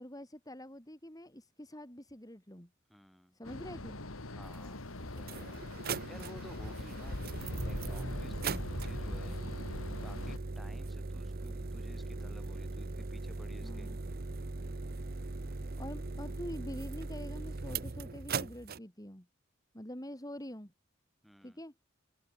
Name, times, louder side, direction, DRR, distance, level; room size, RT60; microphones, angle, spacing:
voice 1, 0.0-2.7 3.3-4.0 13.6-14.0 15.8-19.3 19.7-20.7 21.4-21.7, equal, 15° left, 4.2 m, -45 dB
voice 2, 2.9-3.4 4.3-9.4 10.0-13.9 17.6-17.9 21.2-21.6, equal, ahead, 3.6 m, -55 dB
sound 1, 3.4-10.4, left 1 dB, 85° left, 2.6 m, -42 dB
sound 2, 4.5-4.6 5.2-18.8, right 3 dB, 45° right, 0.8 m, -39 dB
head